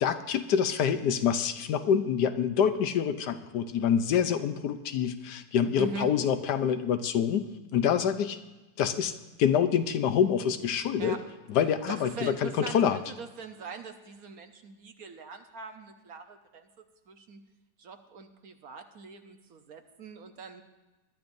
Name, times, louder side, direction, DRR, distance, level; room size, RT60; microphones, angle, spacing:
voice 1, 0.0-8.4 8.8-11.2 11.5-13.0, left 8 dB, 70° left, 10 dB, 1.3 m, -26 dB
voice 2, 5.8-6.1 11.0-11.3 11.9-16.7 17.1-17.4 17.8-20.6, right 4 dB, 60° right, 6 dB, 1.2 m, -42 dB
21.0 x 12.0 x 2.6 m, 1.1 s
omnidirectional pair, 2.0 m